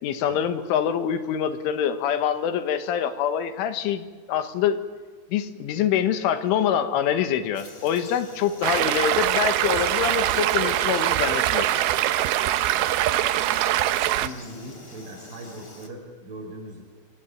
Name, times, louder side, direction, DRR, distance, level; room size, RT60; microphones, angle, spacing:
voice 1, 0.0-4.8 5.3-11.7, left 9 dB, 80° left, 9 dB, 4.1 m, -25 dB
Frog, 7.5-15.9, left 2 dB, 15° left, 2.5 m, -45 dB
Stream, 8.6-14.3, right 13 dB, 80° right, 2.2 m, -23 dB
voice 2, 14.0-16.8, right 1 dB, 55° right, -6 dB, 8.2 m, -40 dB
26.5 x 23.5 x 9.0 m, 1.5 s
omnidirectional pair, 5.6 m